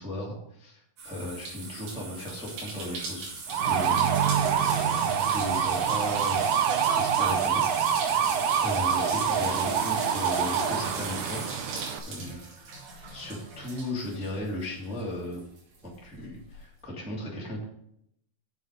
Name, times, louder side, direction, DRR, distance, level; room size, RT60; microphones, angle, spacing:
voice 1, 0.0-3.4 3.6-4.1 4.6-4.9 5.3-6.4 6.9-7.8 8.6-11.5 12.1-12.4 12.7-12.8 13.1-15.4 15.8-17.6, left 1 dB, ahead, -4 dB, 1.8 m, -36 dB
sound 1, 1.0-15.0 15.3-16.6, right 3 dB, 70° right, 4.1 m, -38 dB
sound 2, 3.5-12.0, right 8 dB, 85° right, 1.7 m, -26 dB
8.3 x 7.3 x 5.2 m, 0.74 s
omnidirectional pair, 4.5 m